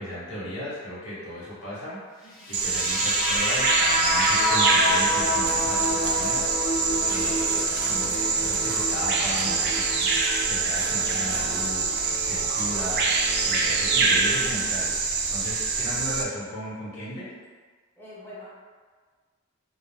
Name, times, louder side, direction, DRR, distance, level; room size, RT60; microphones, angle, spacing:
voice 1, 0.0-10.1 10.4-11.9 12.2-13.2 13.4-14.9 15.3-17.3, equal, 85° left, -9 dB, 1.1 m, -36 dB
voice 2, 2.2-2.7 18.0-18.5, left 1 dB, 10° left, -9 dB, 0.6 m, -45 dB
sound 1, 2.4-10.4, left 1 dB, 65° left, 0.6 m, -28 dB
Bird vocalization bird call bird song, 2.5-16.2, right 4 dB, 55° right, 0.3 m, -25 dB
Organ, 4.2-15.1, right 1 dB, 40° left, 0.9 m, -40 dB
2.3 x 2.1 x 3.3 m, 1.5 s
head